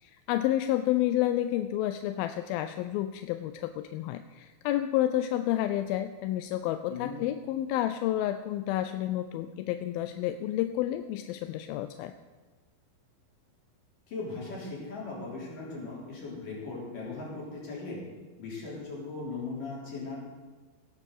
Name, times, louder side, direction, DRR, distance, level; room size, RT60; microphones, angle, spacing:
voice 1, 0.0-12.1, left 13 dB, 80° left, 10 dB, 2.3 m, -30 dB
voice 2, 14.1-18.0 18.4-20.2, left 3 dB, 60° left, -5 dB, 5.2 m, -38 dB
17.5 x 7.2 x 6.6 m, 1.3 s
omnidirectional pair, 4.4 m